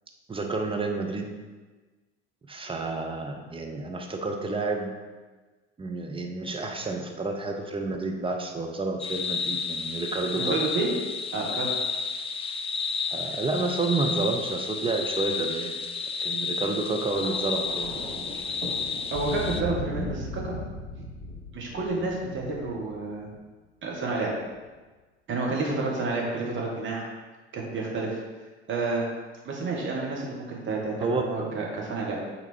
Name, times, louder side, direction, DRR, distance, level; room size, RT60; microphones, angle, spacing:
voice 1, 0.3-1.4 2.5-4.9 5.8-10.6 13.1-15.7 16.2-18.0 31.0-31.6, right 3 dB, 15° right, 2 dB, 0.9 m, -30 dB
sound 1, 9.0-19.6, left 5 dB, 20° left, 0.5 m, -31 dB
voice 2, 10.4-10.9 11.3-11.7 19.1-20.5 21.5-23.3 23.8-24.3 25.3-27.0 27.5-28.2 28.7-29.0 29.5-32.2, right 3 dB, 35° right, -3 dB, 1.8 m, -30 dB
Thunder, 17.1-23.4 24.4-24.7, equal, 90° right, 1.2 m, -37 dB
7.1 x 4.1 x 4.6 m, 1.3 s
figure-of-eight pair, 65°, 33 cm